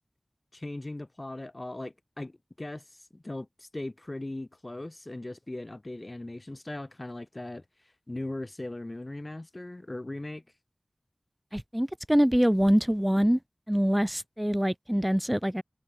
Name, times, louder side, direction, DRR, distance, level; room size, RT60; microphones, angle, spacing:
voice 1, 0.5-2.8 3.1-7.6 8.1-10.4, left 2 dB, 40° left, 2.5 m, -39 dB
voice 2, 11.5-13.4 13.7-15.6, equal, 10° right, 0.6 m, -24 dB
wide cardioid pair, 50°, 0 cm